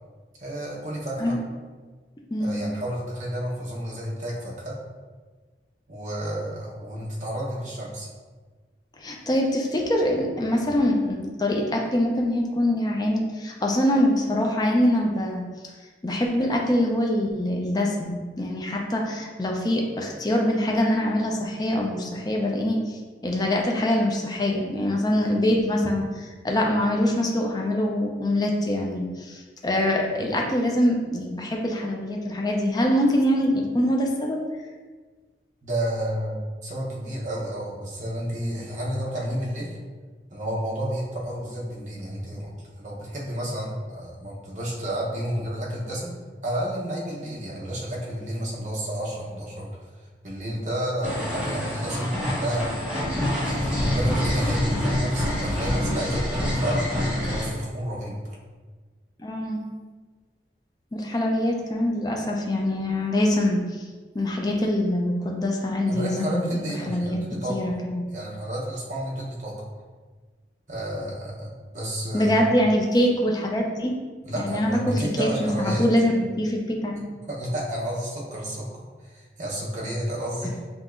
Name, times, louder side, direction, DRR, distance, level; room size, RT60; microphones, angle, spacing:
voice 1, 0.4-1.3 2.4-4.8 5.9-8.1 35.6-39.8 40.3-46.1 46.4-49.7 50.2-53.0 53.4-58.2 65.9-67.7 68.1-69.6 70.7-71.5 71.7-72.3 74.2-75.9 77.3-80.6, equal, 45° right, -4 dB, 0.9 m, -31 dB
voice 2, 2.3-2.6 9.0-15.4 16.0-34.4 59.2-59.6 60.9-63.8 64.1-66.5 66.9-67.2 67.5-68.1 72.1-73.9 74.4-77.0, left 1 dB, 20° left, 0 dB, 0.4 m, -24 dB
sound 1, 51.0-57.5, equal, 5° right, 1.4 m, -26 dB
5.4 x 2.9 x 2.5 m, 1.4 s
head